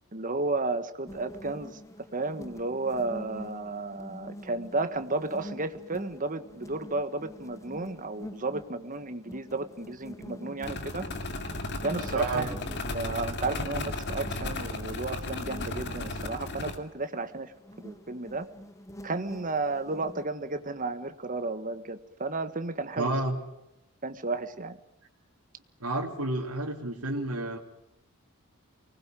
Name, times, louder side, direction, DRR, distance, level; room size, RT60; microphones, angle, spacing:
voice 1, 0.1-1.8 2.1-11.1 11.8-17.5 17.8-18.5 19.0-23.1 24.0-24.8, right 3 dB, 35° right, 10 dB, 1.5 m, -33 dB
sound 1, 1.1-20.2, equal, 15° left, 0.9 m, -46 dB
sound 2, 10.6-16.8, left 2 dB, 50° left, 2.6 m, -35 dB
voice 2, 12.1-12.5 23.0-23.4 25.8-27.6, right 2 dB, 80° right, -2 dB, 3.0 m, -30 dB
24.5 x 20.0 x 9.1 m, 0.92 s
head